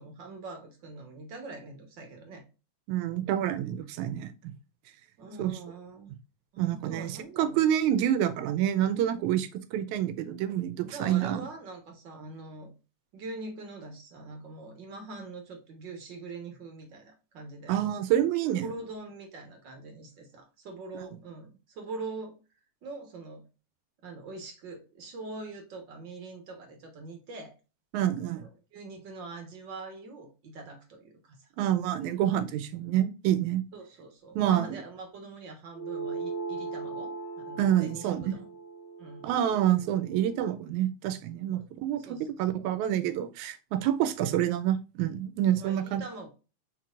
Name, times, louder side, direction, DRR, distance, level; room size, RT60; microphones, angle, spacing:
voice 1, 0.0-2.4 5.2-6.1 6.5-7.6 10.8-12.7 13.1-17.7 18.6-22.4 22.8-23.4 24.0-27.5 28.0-28.1 28.4-31.5 33.7-38.5 39.0-39.3 41.5-41.6 42.0-42.4 45.6-46.3, right 3 dB, 55° right, 1.4 m, -43 dB
voice 2, 2.9-4.5 5.4-5.5 6.6-11.5 17.7-18.7 21.0-21.1 27.9-28.4 31.6-33.6 34.4-34.7 37.6-38.3 39.2-46.0, right 11 dB, 80° right, 2.0 m, -27 dB
sound 1, 35.7-40.5, right 4 dB, 15° left, 0.5 m, -39 dB
4.5 x 4.4 x 2.4 m
omnidirectional pair, 3.4 m